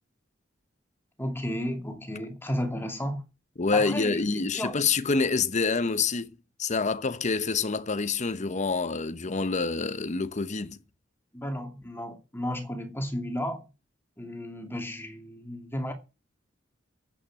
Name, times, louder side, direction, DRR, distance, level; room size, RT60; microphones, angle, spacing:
voice 1, 1.2-3.2 3.7-4.8 11.3-13.6 14.2-15.9, equal, 10° left, 2.4 m, -33 dB
voice 2, 3.6-6.3 6.6-10.8, left 4 dB, 40° left, 0.8 m, -27 dB
9.8 x 8.6 x 7.5 m
head